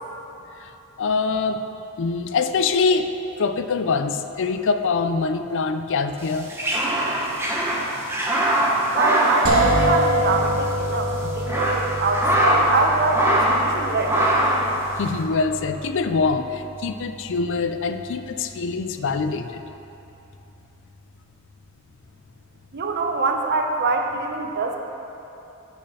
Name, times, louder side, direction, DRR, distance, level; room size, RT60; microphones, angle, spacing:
voice 1, 0.6-1.6 2.0-6.5 11.2-11.4 15.0-19.6, left 4 dB, 60° left, 9 dB, 0.4 m, -24 dB
red ruffed lemur, 6.3-10.4 10.6-10.7 11.2-12.8 13.1-13.7 14.0-14.7, right 1 dB, 10° right, 0.9 m, -22 dB
voice 2, 8.9-14.4 22.7-24.8, right 3 dB, 50° right, 3 dB, 0.7 m, -24 dB
sound 1, 9.4-19.2, equal, 75° right, 1.2 m, -27 dB
8.3 x 6.4 x 5.5 m, 2.9 s
head